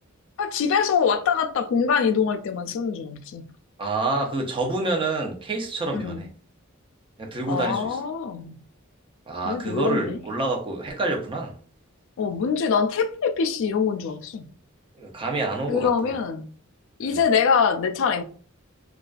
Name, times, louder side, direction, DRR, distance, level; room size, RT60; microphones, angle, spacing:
voice 1, 0.4-3.4 5.9-6.2 7.5-8.6 9.4-10.2 12.2-14.5 15.7-16.5 17.0-18.2, left 6 dB, 65° left, 0.3 m, -24 dB
voice 2, 3.8-6.3 7.2-8.0 9.3-11.5 15.0-15.9 17.1-17.2, right 2 dB, 25° right, 0.5 m, -27 dB
2.3 x 2.2 x 2.4 m
head